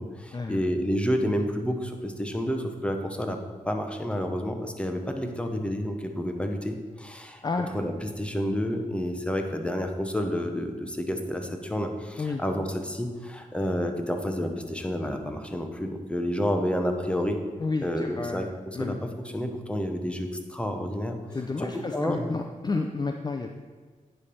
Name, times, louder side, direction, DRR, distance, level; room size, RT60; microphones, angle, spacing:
voice 1, 0.0-3.4 3.7-7.4 7.7-17.4 17.8-21.2 21.6-22.3, equal, 10° left, 4 dB, 0.9 m, -30 dB
voice 2, 17.6-19.0 21.3-23.5, left 3 dB, 30° left, 4 dB, 0.5 m, -31 dB
9.6 x 3.4 x 5.4 m, 1.5 s
cardioid pair, 60°, 14 cm